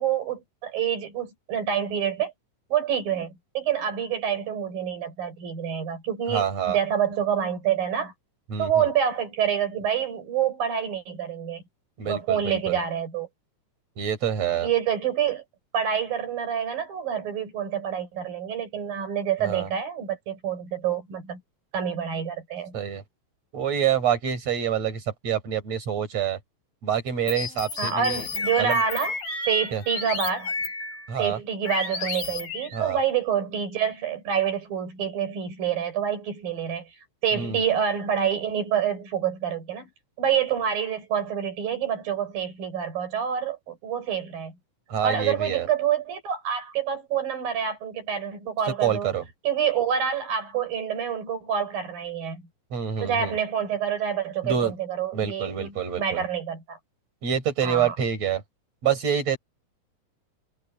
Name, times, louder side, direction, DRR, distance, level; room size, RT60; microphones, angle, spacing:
voice 1, 0.0-2.3 2.7-8.1 8.6-11.6 12.0-13.3 14.6-15.4 15.7-21.4 21.7-22.8 27.8-29.2 29.5-30.5 31.2-36.9 37.2-39.9 40.2-44.6 45.0-49.1 49.5-52.4 53.0-56.8 57.6-58.0, right 8 dB, 85° right, 7.1 m, -27 dB
voice 2, 6.3-6.8 8.5-8.9 12.0-12.8 14.0-14.7 19.4-19.7 22.7-23.0 23.5-26.4 26.8-28.3 28.6-28.8 29.7-29.8 31.1-31.4 32.7-33.0 37.3-37.6 44.9-45.7 48.8-49.2 52.7-53.4 54.4-54.7 55.1-56.2 57.2-58.4 58.8-59.4, right 8 dB, 50° right, 5.4 m, -27 dB
sound 1, 27.3-31.2 31.7-33.0, left 3 dB, 75° left, 9.4 m, -32 dB
omnidirectional pair, 3.9 m